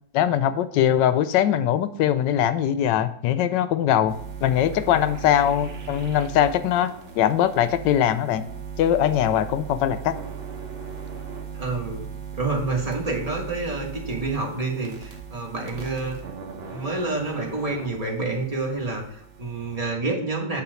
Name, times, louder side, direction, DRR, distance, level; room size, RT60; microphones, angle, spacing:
voice 1, 0.1-4.1 4.4-8.4 8.8-10.2, left 10 dB, 90° left, 12 dB, 1.2 m, -21 dB
sound 1, 4.1-19.8, right 7 dB, 45° right, 0.9 m, -38 dB
voice 2, 11.5-12.0 12.3-16.2 16.7-20.6, right 3 dB, 25° right, -1 dB, 1.3 m, -28 dB
8.3 x 3.0 x 6.3 m, 0.64 s
omnidirectional pair, 1.9 m